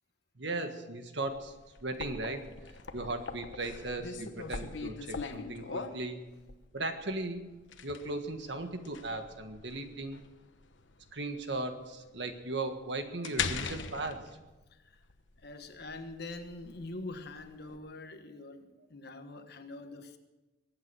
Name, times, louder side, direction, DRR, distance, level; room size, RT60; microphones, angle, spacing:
voice 1, 0.4-1.5 1.8-2.4 2.9-6.2 6.7-7.5 7.8-10.2 11.1-14.2, right 2 dB, 65° right, 7 dB, 1.6 m, -37 dB
sound 1, 1.3-17.8, left 5 dB, 80° left, 1.1 m, -42 dB
voice 2, 14.7-15.1 15.4-20.2, left 2 dB, 60° left, 7 dB, 1.4 m, -44 dB
22.5 x 8.8 x 6.3 m, 1.1 s
head